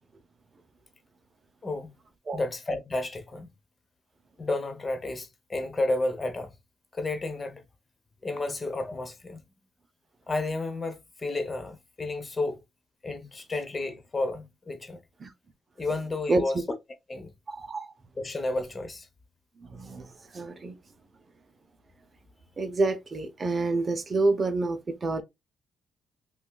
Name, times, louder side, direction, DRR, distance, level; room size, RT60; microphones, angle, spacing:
voice 1, 1.6-1.9 2.3-3.5 4.4-6.5 6.9-7.6 8.2-9.4 10.3-12.6 13.0-15.0 15.8-16.6 17.1-17.3 18.2-19.1, left 2 dB, 30° left, 0.8 m, -31 dB
voice 2, 17.5-17.9 19.7-20.1 20.3-20.7 22.6-25.2, right 3 dB, 35° right, 0.6 m, -27 dB
5.5 x 2.3 x 2.3 m
cardioid pair, 90°, 0 cm